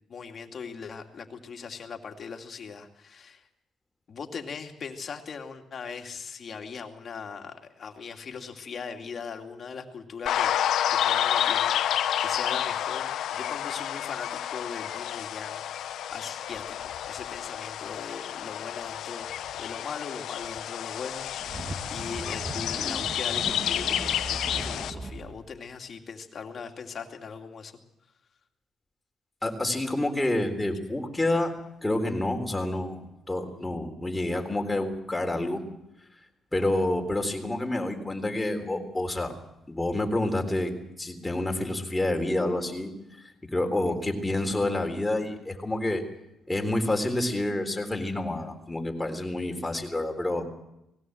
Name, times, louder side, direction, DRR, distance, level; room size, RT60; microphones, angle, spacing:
voice 1, 0.1-3.5 4.1-10.5 10.9-27.7 49.7-49.8, left 5 dB, 50° left, 4 dB, 2.5 m, -40 dB
sound 1, 10.3-24.9, left 10 dB, 75° left, 1.0 m, -30 dB
sound 2, 21.1-25.4, right 2 dB, 30° right, 2.3 m, -38 dB
voice 2, 29.4-31.5 31.8-35.6 36.5-39.3 39.7-40.7 41.0-42.9 43.5-46.0 46.5-50.5, left 1 dB, 15° left, 4 dB, 3.8 m, -28 dB
19.5 x 17.0 x 7.8 m, 0.85 s
cardioid pair, 90°, 0 cm